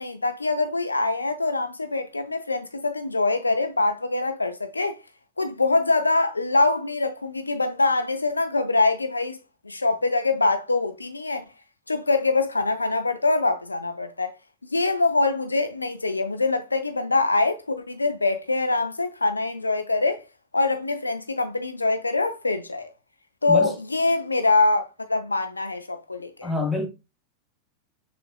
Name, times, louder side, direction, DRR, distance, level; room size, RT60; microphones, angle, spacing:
voice 1, 0.0-5.0 5.4-9.4 9.6-11.4 11.9-14.3 14.7-20.2 20.5-22.9 23.4-26.5, left 3 dB, 80° left, 0.4 m, -24 dB
voice 2, 26.4-26.9, left 1 dB, 5° left, 0.9 m, -26 dB
6.4 x 2.5 x 2.2 m
figure-of-eight pair, 90°, 0 cm